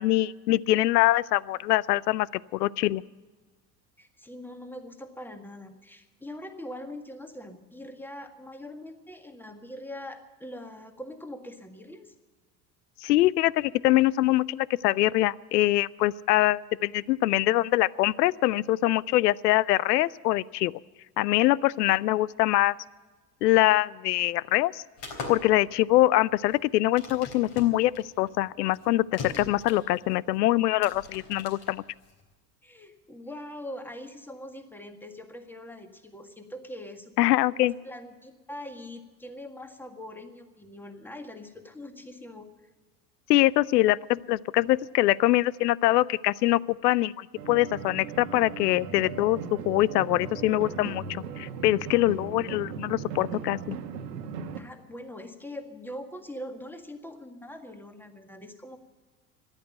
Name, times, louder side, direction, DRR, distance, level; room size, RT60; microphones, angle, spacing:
voice 1, 0.0-2.3 2.5-3.0 13.0-20.7 21.2-22.7 23.4-24.8 25.3-27.9 28.2-31.8 37.2-37.7 43.3-49.4 49.7-53.8, left 16 dB, 75° left, 24 dB, 0.6 m, -24 dB
voice 2, 4.0-12.1 32.6-37.4 37.6-42.5 54.6-58.8, left 1 dB, 5° left, 7 dB, 1.7 m, -42 dB
sound 1, 25.0-32.3, left 3 dB, 55° left, 4.0 m, -42 dB
sound 2, 47.4-54.6, right 6 dB, 80° right, 1.3 m, -38 dB
14.0 x 10.5 x 9.1 m, 1.3 s
hypercardioid pair, 75°, 48 cm